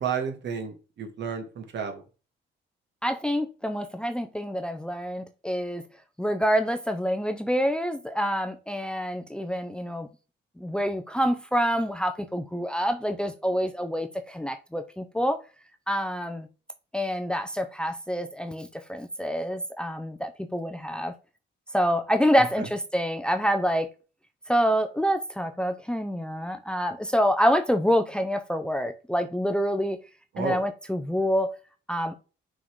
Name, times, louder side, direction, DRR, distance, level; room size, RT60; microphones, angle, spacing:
voice 1, 0.0-2.0 30.3-30.6, right 6 dB, 60° right, 1.9 m, -31 dB
voice 2, 3.0-5.8 6.2-10.1 10.6-15.4 15.9-16.5 16.9-21.1 21.7-23.9 24.5-30.0 30.4-31.5 31.9-32.1, equal, 5° left, 0.7 m, -27 dB
6.0 x 3.9 x 4.7 m
cardioid pair, 90°, 20 cm